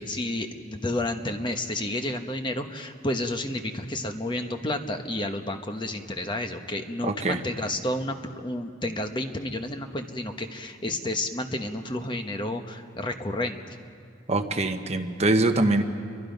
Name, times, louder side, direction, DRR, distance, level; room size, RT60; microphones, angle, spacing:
voice 1, 0.0-13.8, left 1 dB, 25° left, 6 dB, 1.1 m, -31 dB
voice 2, 7.0-7.4 14.3-15.8, right 2 dB, 35° right, 5 dB, 1.2 m, -23 dB
29.0 x 23.5 x 5.3 m, 2.3 s
head